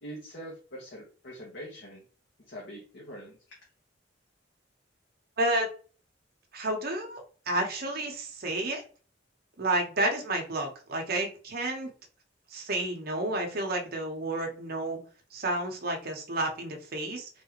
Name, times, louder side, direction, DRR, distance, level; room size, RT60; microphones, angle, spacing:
voice 1, 0.0-2.0 2.5-3.6, equal, 60° left, -3 dB, 0.9 m, -43 dB
voice 2, 5.4-5.7 6.5-8.8 9.6-11.9 12.5-15.0 15.3-17.3, right 1 dB, 55° right, 3 dB, 0.8 m, -30 dB
3.5 x 2.4 x 2.9 m, 0.39 s
head